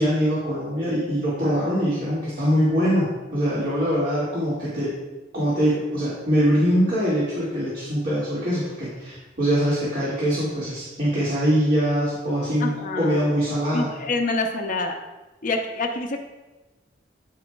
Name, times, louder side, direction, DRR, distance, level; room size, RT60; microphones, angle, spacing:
voice 1, 0.0-4.9 5.3-12.7 13.0-13.9, equal, 50° right, -10 dB, 2.1 m, -23 dB
voice 2, 12.6-13.3 13.7-15.0 15.4-16.2, left 3 dB, 50° left, 3 dB, 0.7 m, -26 dB
13.0 x 4.8 x 2.3 m, 1.1 s
head